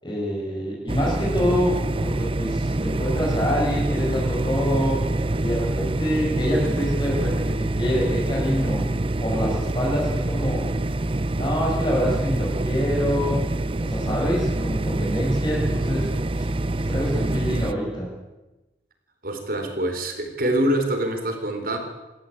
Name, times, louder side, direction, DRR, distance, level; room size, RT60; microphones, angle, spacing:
voice 1, 0.0-5.0 5.4-10.7 11.3-13.4 13.8-16.1 16.3-16.5 16.9-18.1, equal, 25° left, -4 dB, 7.4 m, -26 dB
sound 1, 0.9-17.7, right 2 dB, 30° right, 0.6 m, -25 dB
voice 2, 19.2-21.8, right 1 dB, 50° right, 5 dB, 3.9 m, -25 dB
27.5 x 13.5 x 8.7 m, 1.1 s
head